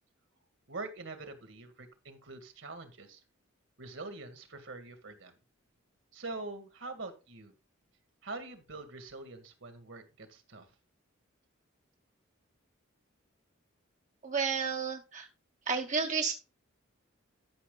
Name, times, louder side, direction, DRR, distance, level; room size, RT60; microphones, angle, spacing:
voice 1, 0.7-3.2 3.8-5.4 6.1-7.5 8.2-10.7, right 3 dB, 65° right, 8 dB, 2.0 m, -44 dB
voice 2, 14.2-15.3 15.7-16.3, right 5 dB, 35° right, 3 dB, 0.9 m, -31 dB
12.5 x 6.4 x 3.9 m, 0.29 s
head